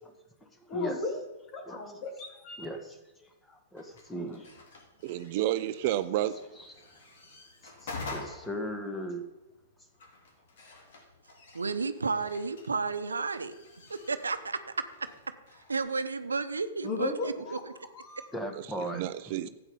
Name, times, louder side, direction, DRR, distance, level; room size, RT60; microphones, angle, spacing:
voice 1, 0.7-1.2 1.5-2.7 16.8-17.6 17.9-18.3, left 3 dB, 35° left, 4 dB, 2.6 m, -35 dB
voice 2, 2.6-4.5 6.6-6.7 7.6-9.2 18.3-19.5, right 1 dB, 10° left, 5 dB, 1.7 m, -38 dB
sound 1, 3.8-15.8, left 3 dB, 60° left, 3.1 m, -48 dB
voice 3, 5.0-6.4 18.5-19.5, right 13 dB, 50° right, 13 dB, 0.5 m, -31 dB
voice 4, 11.5-13.5 13.9-14.8 15.7-17.6, right 4 dB, 85° right, 11 dB, 0.8 m, -32 dB
12.5 x 8.7 x 5.5 m, 1.0 s
hypercardioid pair, 115°, 0 cm